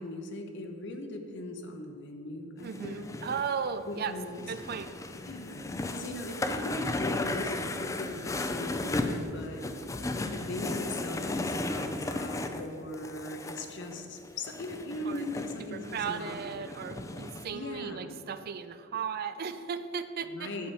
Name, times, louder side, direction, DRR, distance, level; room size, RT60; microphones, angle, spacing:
voice 1, 0.0-3.2 3.9-4.4 5.3-16.7 17.5-18.2 20.3-20.7, left 1 dB, 60° left, 5 dB, 0.9 m, -39 dB
sound 1, 2.6-17.5, left 2 dB, 15° left, 0.4 m, -35 dB
voice 2, 2.6-4.1 4.5-4.9 15.0-15.3 15.7-20.5, right 6 dB, 50° right, 11 dB, 0.4 m, -36 dB
8.6 x 4.2 x 7.1 m, 2.4 s
head